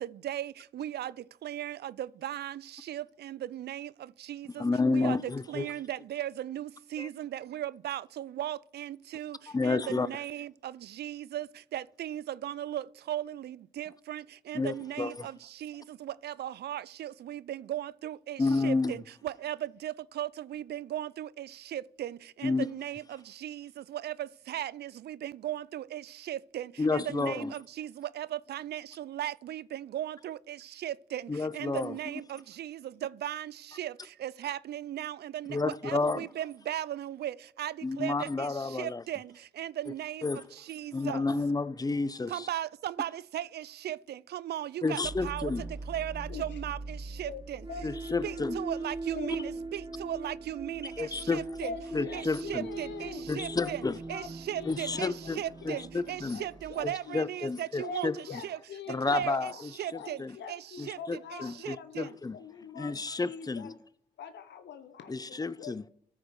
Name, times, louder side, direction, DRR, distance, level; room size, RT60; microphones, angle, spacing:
voice 1, 0.0-5.2 5.5-41.3 42.3-47.6 48.2-51.7 52.1-58.6 58.9-59.5 59.8-61.0 61.3-62.2, right 12 dB, 65° right, 0.4 m, -37 dB
voice 2, 4.6-5.7 7.0-7.1 9.5-10.1 14.5-15.3 18.4-18.9 22.4-22.7 26.8-27.5 31.3-32.0 35.5-36.3 37.8-39.0 40.2-40.4 40.9-42.5 44.8-45.6 47.8-48.6 49.3-49.4 51.0-51.5 51.9-52.7 53.3-54.0 54.6-56.4 56.8-58.4 58.9-60.4 60.8-62.4 62.8-63.7 65.1-65.8, left 3 dB, 20° left, 0.5 m, -31 dB
sound 1, 45.0-56.9, right 3 dB, 25° right, 1.1 m, -41 dB
voice 3, 46.3-46.6 47.2-47.4 47.7-48.6 49.1-49.6 51.6-53.3 53.6-55.8 56.0-57.3 57.8-59.6 59.9-63.0 63.2-63.7 64.2-65.9, left 6 dB, 70° left, 0.9 m, -44 dB
13.5 x 4.9 x 4.8 m
supercardioid pair, 50°, 19 cm